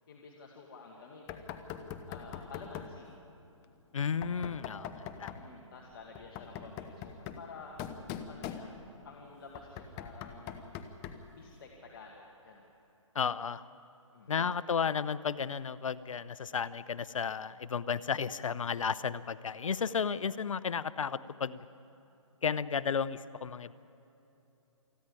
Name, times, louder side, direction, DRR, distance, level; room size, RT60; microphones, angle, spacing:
voice 1, 0.1-1.6 2.1-3.1 5.3-10.8 11.3-12.7 14.1-14.5, left 4 dB, 45° left, 0 dB, 2.1 m, -51 dB
Knock, 1.3-3.0 4.2-5.5 6.1-9.0 9.5-11.3, left 8 dB, 15° left, 0.8 m, -43 dB
voice 2, 3.9-4.9 5.2-5.3 13.1-13.6 14.3-21.6 22.4-23.7, left 6 dB, 75° left, 17 dB, 0.7 m, -33 dB
27.5 x 10.5 x 9.7 m, 3.0 s
hypercardioid pair, 155°, 17 cm